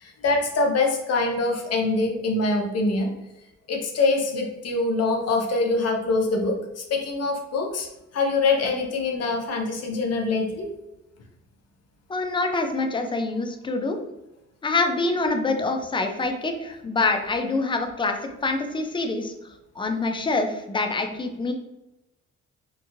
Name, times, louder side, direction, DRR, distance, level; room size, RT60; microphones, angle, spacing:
voice 1, 0.0-3.1 3.7-7.9 8.1-10.7, left 3 dB, 55° left, 2 dB, 0.6 m, -24 dB
voice 2, 12.1-14.0 14.6-19.3 19.8-21.5, left 3 dB, 15° left, 5 dB, 0.4 m, -25 dB
2.9 x 2.6 x 2.4 m, 0.97 s
cardioid pair, 90°, 30 cm